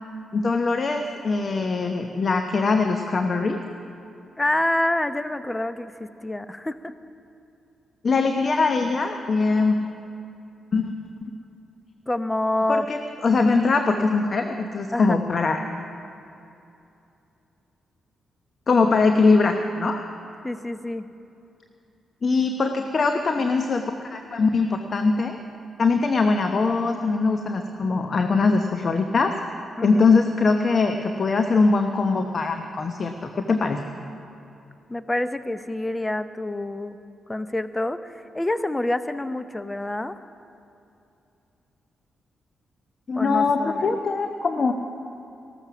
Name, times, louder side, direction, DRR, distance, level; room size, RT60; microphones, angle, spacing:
voice 1, 0.3-3.6 8.0-9.8 10.7-10.9 12.7-15.6 18.7-20.0 22.2-25.4 25.8-29.3 29.8-33.8 43.1-44.7, left 4 dB, 50° left, 6 dB, 0.9 m, -22 dB
voice 2, 4.4-6.9 12.1-12.9 14.9-15.1 20.4-21.0 29.8-30.1 34.9-37.0 37.3-40.2 43.1-44.0, left 1 dB, 20° left, 12 dB, 0.7 m, -27 dB
15.0 x 13.0 x 6.0 m, 2.7 s
hypercardioid pair, 45°, 0 cm